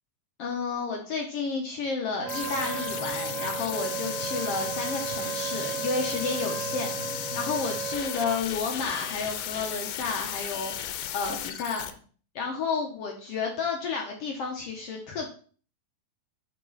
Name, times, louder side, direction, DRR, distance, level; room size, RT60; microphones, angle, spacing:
voice 1, 0.4-11.9 12.3-15.3, left 4 dB, 70° left, 1 dB, 1.5 m, -31 dB
sound 1, 2.2-8.0, equal, 35° right, 1.4 m, -43 dB
Wind instrument woodwind instrument, 2.2-8.4, right 9 dB, 85° right, 2.3 m, -35 dB
sound 2, 2.3-11.9, left 11 dB, 85° left, 2.2 m, -35 dB
7.3 x 4.7 x 3.8 m, 0.42 s
omnidirectional pair, 3.7 m